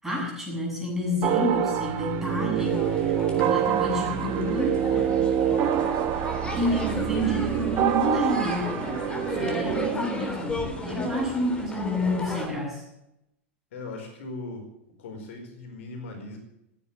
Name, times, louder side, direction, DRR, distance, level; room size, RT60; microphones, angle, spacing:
voice 1, 0.0-4.9 6.5-8.8 9.1-12.8, equal, 5° right, -2 dB, 7.5 m, -29 dB
sound 1, 1.2-9.9, right 9 dB, 45° right, 1.7 m, -26 dB
sound 2, 2.6-12.5, left 1 dB, 15° left, 3.6 m, -34 dB
voice 2, 13.7-14.7 15.0-16.4, left 2 dB, 70° left, 3 dB, 4.7 m, -39 dB
15.0 x 9.7 x 8.5 m, 0.83 s
hypercardioid pair, 100°, 7 cm